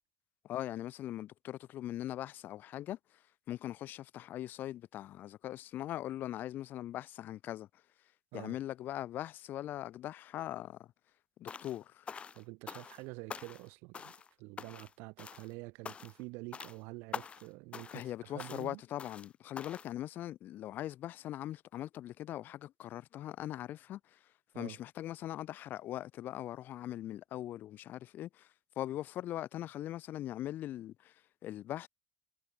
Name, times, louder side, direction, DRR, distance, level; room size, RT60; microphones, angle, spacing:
voice 1, 0.4-3.0 3.5-7.7 8.3-10.9 11.4-12.1 17.9-24.2 24.6-28.5 28.8-31.1 31.4-31.9, left 13 dB, 55° left, 0.6 m, -41 dB
sound 1, 11.5-11.8 12.1-13.0 13.3-13.7 13.9-14.3 14.6-14.9 15.2-15.5 15.8-16.2 16.5-16.8 17.1-17.5 17.7-18.1 18.4-18.7 19.0-19.3 19.6-19.9, left 6 dB, 30° left, 1.9 m, -45 dB
voice 2, 12.3-14.1 14.4-18.8 24.5-24.8, right 27 dB, 90° right, 2.9 m, -47 dB
cardioid pair, 120°, 4 cm